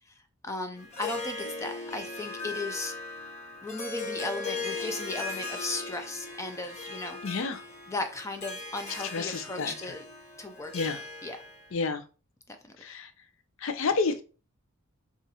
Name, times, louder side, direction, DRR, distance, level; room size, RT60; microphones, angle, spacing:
voice 1, 0.4-2.9 3.6-7.2 7.9-10.0 10.4-10.7 11.2-11.4, left 2 dB, 15° left, 6 dB, 0.3 m, -36 dB
Harp, 0.8-11.7, left 3 dB, 30° left, 0.8 m, -38 dB
voice 2, 7.2-7.6 9.1-9.7 10.7-11.0 11.7-12.0 12.8-13.1 13.6-14.2, left 4 dB, 65° left, 9 dB, 0.5 m, -29 dB
5.4 x 2.5 x 2.7 m, 0.35 s
head